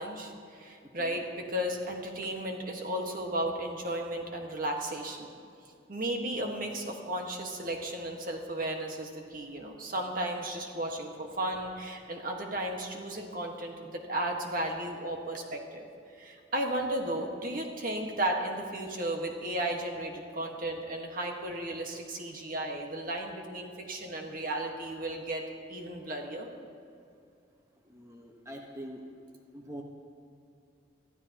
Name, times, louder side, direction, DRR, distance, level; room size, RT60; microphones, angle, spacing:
voice 1, 0.0-5.3 5.9-15.9 16.2-25.4 25.7-26.5, right 1 dB, 50° right, 2 dB, 1.5 m, -34 dB
voice 2, 0.8-1.2 6.3-6.5 16.7-16.9 27.8-29.0 29.5-29.8, equal, 15° right, 0 dB, 1.1 m, -45 dB
22.5 x 13.5 x 3.0 m, 2.4 s
head